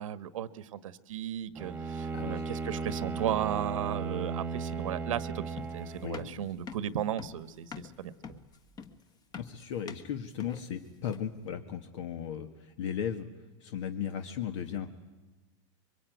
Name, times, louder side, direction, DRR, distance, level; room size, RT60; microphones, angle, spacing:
voice 1, 0.0-8.4, right 10 dB, 90° right, 13 dB, 1.4 m, -35 dB
Bowed string instrument, 1.5-6.4, right 4 dB, 10° right, 1.5 m, -36 dB
sound 1, 5.6-11.4, left 6 dB, 25° left, 1.4 m, -46 dB
voice 2, 6.0-6.3 9.3-13.3 13.6-14.9, left 8 dB, 65° left, 6 dB, 1.9 m, -36 dB
26.5 x 23.5 x 9.4 m, 1.1 s
supercardioid pair, 150°, 16 cm